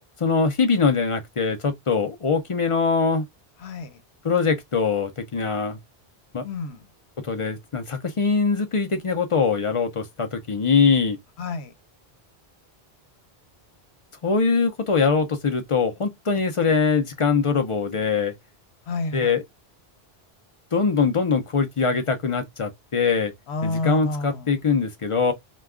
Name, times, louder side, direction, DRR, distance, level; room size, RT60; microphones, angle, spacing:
voice 1, 0.0-3.2 4.2-5.8 6.3-6.4 7.2-11.2 14.2-18.3 19.1-19.4 20.7-23.3 23.6-25.3, left 5 dB, 40° left, 0.5 m, -22 dB
voice 2, 3.6-4.0 6.4-6.8 11.4-11.7 18.9-19.3 23.5-24.5, left 2 dB, 85° left, 0.9 m, -29 dB
2.3 x 2.2 x 3.4 m
omnidirectional pair, 1.1 m